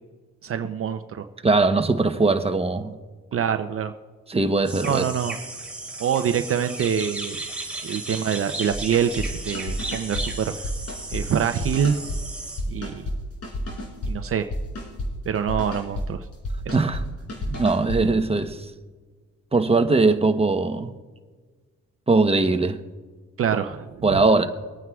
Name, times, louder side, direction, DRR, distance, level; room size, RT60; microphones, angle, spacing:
voice 1, 0.4-1.2 3.3-3.9 4.8-5.4 6.0-7.4 7.8-10.7 11.1-12.0 12.7-13.1 14.1-14.5 15.3-16.3 16.7-16.9 23.4-24.1, right 8 dB, 50° right, 0.7 m, -25 dB
voice 2, 1.4-2.9 4.3-5.0 16.7-17.0 17.5-18.6 19.5-20.9 22.1-22.8 24.0-24.5, right 3 dB, 20° right, 0.9 m, -20 dB
sound 1, 4.6-12.6, right 2 dB, 5° right, 3.1 m, -35 dB
sound 2, 8.7-9.3 9.5-10.3 10.5-11.2 11.6-12.2 12.6-13.2 13.4-14.1 14.5-15.1 15.5-16.1 16.3-17.0 17.3-18.0, left 1 dB, 55° left, 4.5 m, -30 dB
25.0 x 9.2 x 2.4 m
cardioid pair, 90°, 30 cm